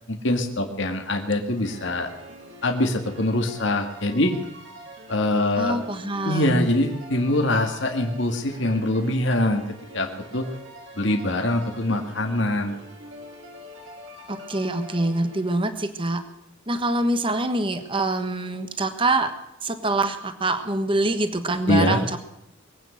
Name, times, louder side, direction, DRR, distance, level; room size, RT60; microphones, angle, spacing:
voice 1, 0.1-2.1 2.6-4.4 5.1-5.8 6.3-9.6 9.9-10.5 11.0-12.8 21.7-22.0, left 1 dB, 60° left, 3 dB, 1.9 m, -23 dB
sound 1, 1.5-15.8, equal, 60° right, 3.1 m, -44 dB
voice 2, 5.6-6.7 14.3-16.2 16.7-19.3 19.6-22.2, right 2 dB, 25° right, 9 dB, 1.3 m, -25 dB
22.0 x 9.1 x 6.4 m, 0.86 s
head